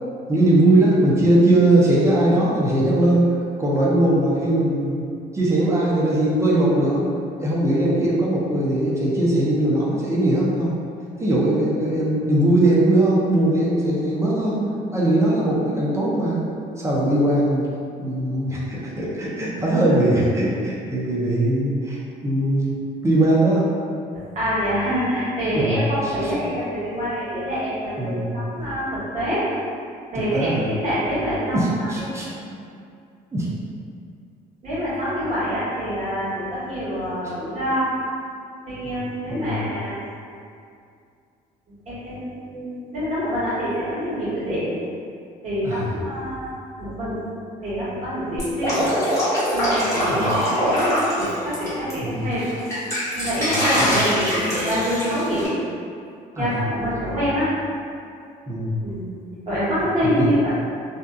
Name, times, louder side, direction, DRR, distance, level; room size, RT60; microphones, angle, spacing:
voice 1, 0.3-3.3 3.6-5.0 5.3-7.0 7.4-10.8 11.2-14.6 14.9-16.4 16.8-17.7 18.0-23.7 25.5-25.8 26.0-26.3 28.0-28.3 30.3-30.7 31.5-32.6 33.3-33.5 39.3-39.7 45.6-45.9 50.1-50.4 52.0-52.3 53.4-53.9 56.4-56.6 58.5-58.8 60.0-60.3, right 1 dB, 15° right, -6 dB, 0.5 m, -20 dB
voice 2, 24.3-29.4 30.1-32.1 34.6-37.9 38.6-40.0 41.9-44.7 45.4-47.2 47.6-49.0 49.5-52.5 52.8-55.5 56.4-57.5 58.8-59.1 59.4-60.5, equal, 45° right, -11 dB, 1.3 m, -26 dB
Drip, 48.4-51.9 52.3-55.5, equal, 15° left, 1.0 m, -23 dB
2.6 x 2.3 x 2.3 m, 2.4 s
cardioid pair, 110°, 17 cm